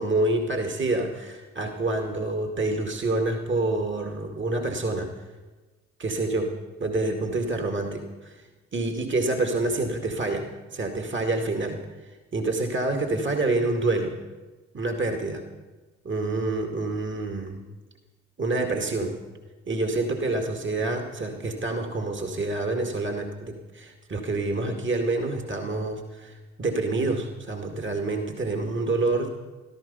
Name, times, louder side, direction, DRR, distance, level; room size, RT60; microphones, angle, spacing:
voice 1, 0.0-5.1 6.0-6.5 6.8-8.4 8.7-14.2 14.7-15.5 16.0-17.6 18.4-19.2 19.7-29.3, right 2 dB, 35° right, 4 dB, 2.2 m, -27 dB
16.0 x 13.5 x 5.6 m, 1.2 s
hypercardioid pair, 40°, 33 cm